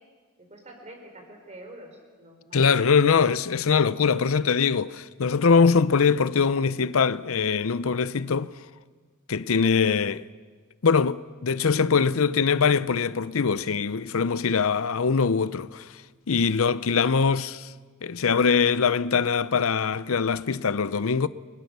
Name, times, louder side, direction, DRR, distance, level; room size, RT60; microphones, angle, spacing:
voice 1, 0.4-3.0, right 1 dB, 30° right, 5.0 m, -46 dB
voice 2, 2.5-8.5 9.3-10.2 10.8-16.0 16.3-17.7 18.0-21.3, left 5 dB, 70° left, 0.6 m, -22 dB
29.5 x 22.0 x 6.8 m
head